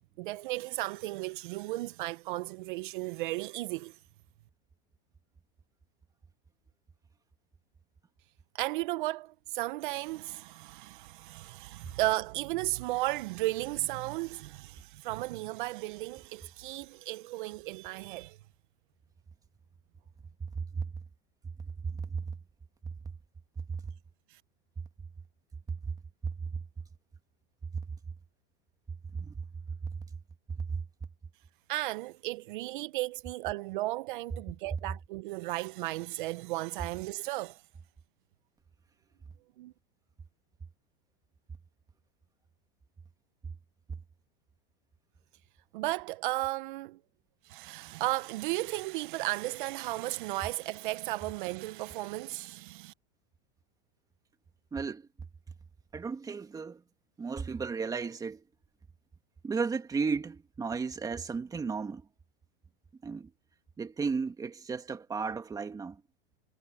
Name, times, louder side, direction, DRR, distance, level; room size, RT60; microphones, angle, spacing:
voice 1, 0.2-3.9 8.5-18.4 24.3-24.4 31.7-37.6 39.6-39.7 45.7-47.0 47.4-52.9, right 18 dB, 55° right, 0.8 m, -35 dB
voice 2, 20.5-20.9 21.8-22.3 23.7-23.8 25.7-25.9 26.2-26.3 29.1-29.3 29.8-29.9 30.6-30.8 54.7-55.1 55.9-56.8 57.2-58.4 59.4-62.1 63.0-63.3 63.8-66.0, right 5 dB, 10° right, 2.0 m, -34 dB
supercardioid pair, 150°, 30 cm